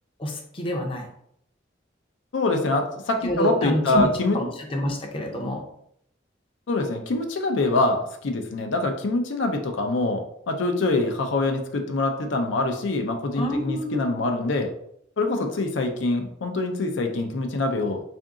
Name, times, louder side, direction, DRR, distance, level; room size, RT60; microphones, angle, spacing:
voice 1, 0.2-1.1 3.2-4.1 4.3-5.6 13.4-14.1, equal, 30° left, 1 dB, 0.6 m, -27 dB
voice 2, 2.3-4.4 6.7-14.7 15.2-18.0, left 2 dB, 70° left, 4 dB, 0.5 m, -25 dB
3.6 x 2.6 x 3.6 m, 0.71 s
head